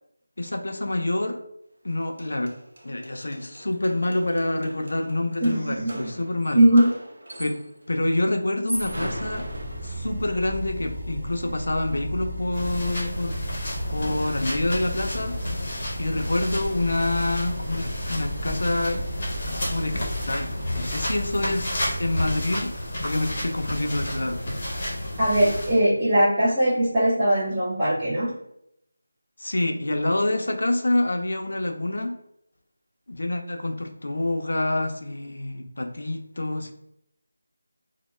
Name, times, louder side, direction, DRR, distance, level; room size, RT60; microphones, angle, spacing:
voice 1, 0.4-1.4 1.8-2.5 2.8-6.7 7.4-7.6 7.9-9.5 9.8-13.3 13.9-15.4 16.0-19.0 19.5-24.4 29.4-32.2 33.1-36.7, left 1 dB, 65° left, 5 dB, 0.4 m, -27 dB
sound 1, 1.9-2.0 2.2-7.8 8.5-10.3, right 1 dB, 70° right, 0.5 m, -39 dB
voice 2, 5.4-6.1 6.5-6.9 24.8-28.3, right 1 dB, 15° right, -11 dB, 0.4 m, -20 dB
sound 2, 8.7-22.4, equal, 45° right, 0.8 m, -34 dB
sound 3, 12.5-25.7, left 1 dB, 25° left, 0.6 m, -31 dB
2.1 x 2.0 x 3.0 m, 0.78 s
figure-of-eight pair, 175°, 0 cm